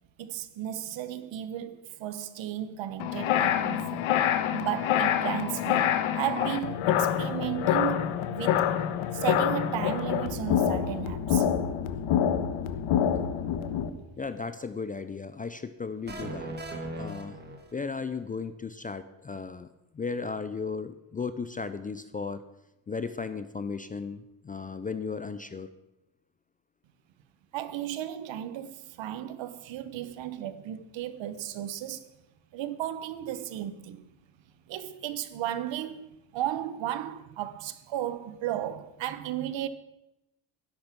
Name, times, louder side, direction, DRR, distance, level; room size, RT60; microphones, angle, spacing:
voice 1, 0.2-4.1 4.5-5.9 6.1-8.7 9.1-11.5 27.5-32.2 32.5-34.1 34.7-39.7, right 12 dB, 70° right, 1.2 m, -34 dB
sound 1, 3.0-13.9, left 9 dB, 85° left, 1.3 m, -26 dB
voice 2, 14.2-16.5 17.0-17.4 17.7-22.4 22.9-25.7, left 5 dB, 20° left, 0.4 m, -35 dB
sound 2, 16.1-18.1, right 2 dB, 20° right, 1.7 m, -38 dB
12.5 x 11.0 x 6.0 m
cardioid pair, 160°, 47 cm